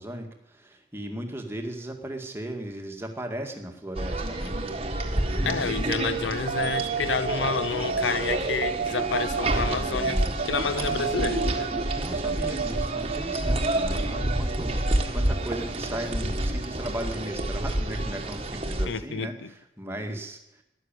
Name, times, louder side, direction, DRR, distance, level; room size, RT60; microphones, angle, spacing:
voice 1, 0.0-4.7 5.3-6.0 10.7-11.0 12.0-20.4, right 1 dB, 15° right, 1.9 m, -37 dB
sound 1, 3.9-18.9, right 1 dB, 30° right, 1.6 m, -29 dB
voice 2, 5.4-11.7 13.9-14.3 18.9-19.5, left 5 dB, 80° left, 0.7 m, -30 dB
sound 2, 6.5-17.2, right 6 dB, 55° right, 0.5 m, -33 dB
13.0 x 11.5 x 9.1 m
head